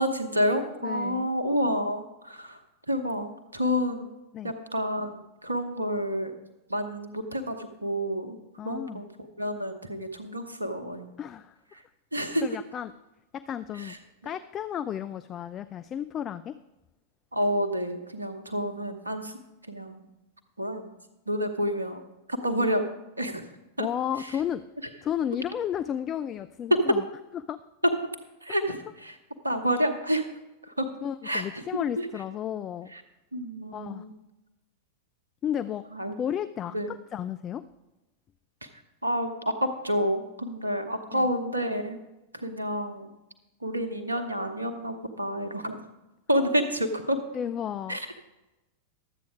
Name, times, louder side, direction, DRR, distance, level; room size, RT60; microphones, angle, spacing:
voice 1, 0.0-2.6 2.9-4.1 4.4-6.3 6.7-8.4 8.6-9.1 9.4-11.1 12.1-12.4 13.8-14.0 17.3-19.4 19.7-20.0 20.6-20.8 21.3-22.0 22.3-22.8 23.2-23.4 23.8-23.9 26.7-26.8 28.4-28.8 29.4-30.2 30.8-30.9 31.2-31.6 32.0-32.1 32.9-33.0 33.3-34.1 35.9-36.2 36.7-36.9 39.0-42.0 42.3-43.2 43.6-45.8 46.3-47.2 47.9-48.0, equal, 80° right, 7 dB, 1.0 m, -29 dB
voice 2, 0.8-1.3 4.3-4.5 8.6-9.0 11.2-11.5 12.4-12.9 13.3-14.0 14.2-16.6 23.8-24.6 25.0-27.1 27.3-27.6 31.0-32.9 33.7-34.0 35.4-35.8 36.2-37.6 41.1-41.3 46.3-46.9 47.3-48.0, left 9 dB, 30° left, 13 dB, 0.3 m, -33 dB
12.0 x 8.2 x 4.8 m, 1.0 s
figure-of-eight pair, 90°, 0 cm